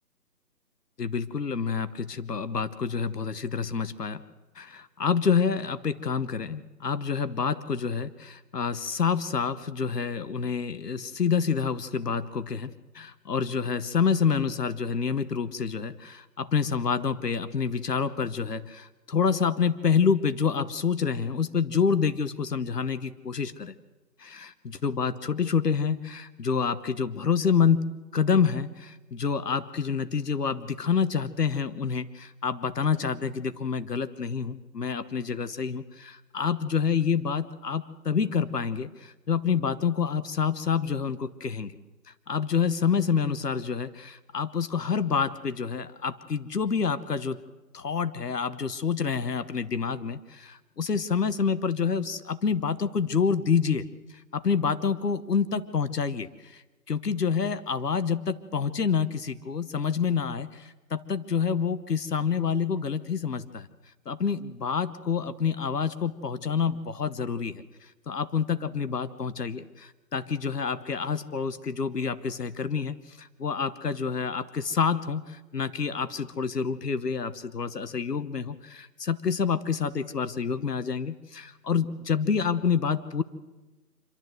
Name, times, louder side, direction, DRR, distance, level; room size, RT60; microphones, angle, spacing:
voice 1, 1.0-4.2 4.6-23.7 24.2-27.8 28.1-41.7 42.3-47.4 47.7-53.9 54.3-56.6 56.9-63.7 64.1-67.6 68.1-83.2, left 6 dB, 70° left, 13 dB, 1.2 m, -28 dB
26.5 x 12.5 x 7.8 m, 1.2 s
hypercardioid pair, 170°, 50 cm